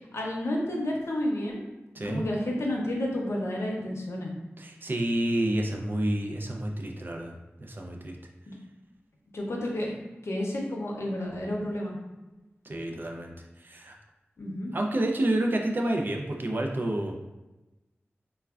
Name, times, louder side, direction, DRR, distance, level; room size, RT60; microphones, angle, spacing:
voice 1, 0.1-1.7 2.0-4.3 8.5-8.6 9.3-10.0 10.2-12.0 14.4-14.7, left 1 dB, 85° left, -1 dB, 0.6 m, -31 dB
voice 2, 4.6-8.2 12.6-13.3 13.6-14.0 14.7-17.1, right 1 dB, 50° right, 1 dB, 0.4 m, -29 dB
3.3 x 2.1 x 2.3 m, 1.1 s
wide cardioid pair, 65°, 4 cm